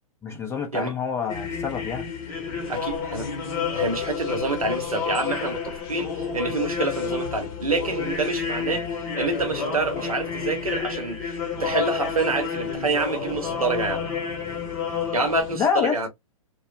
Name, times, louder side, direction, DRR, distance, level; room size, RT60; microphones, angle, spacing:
voice 1, 0.2-2.1 15.5-16.1, left 6 dB, 15° left, 0.5 m, -26 dB
sound 1, 1.3-15.5, left 6 dB, 35° left, 0.9 m, -30 dB
voice 2, 2.7-3.3 3.7-8.9 9.2-14.1 15.1-16.1, right 3 dB, 85° right, 0.9 m, -27 dB
2.3 x 2.1 x 2.6 m
figure-of-eight pair, 115°, 18 cm